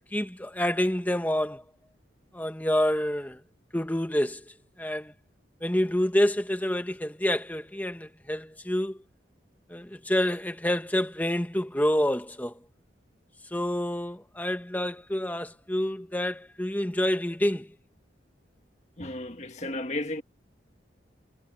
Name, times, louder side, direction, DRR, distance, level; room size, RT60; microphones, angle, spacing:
voice 1, 0.1-1.6 2.3-3.4 3.7-4.4 4.8-5.1 5.6-9.0 9.7-12.6 13.5-17.7, left 1 dB, 10° left, 1.6 m, -28 dB
voice 2, 19.0-20.2, left 1 dB, 40° left, 1.7 m, -33 dB
head